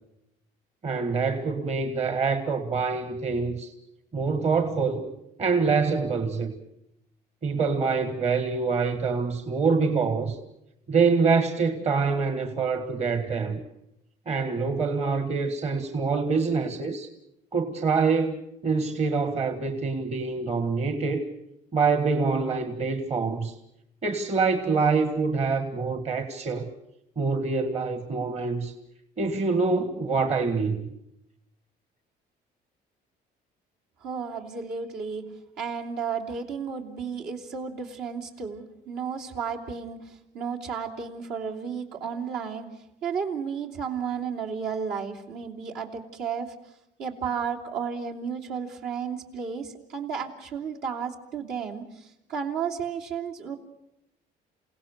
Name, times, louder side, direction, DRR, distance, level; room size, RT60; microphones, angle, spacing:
voice 1, 0.8-3.7 4.1-5.0 5.4-6.5 7.4-10.4 10.9-13.6 14.2-17.1 17.5-21.3 21.7-23.5 24.0-26.7 27.1-28.7 29.2-30.9, right 4 dB, 40° right, 1.7 m, -25 dB
voice 2, 34.0-35.3 35.6-42.7 43.0-46.5 47.0-53.6, right 6 dB, 75° right, 3.2 m, -33 dB
28.5 x 17.0 x 6.7 m
cardioid pair, 110°, 17 cm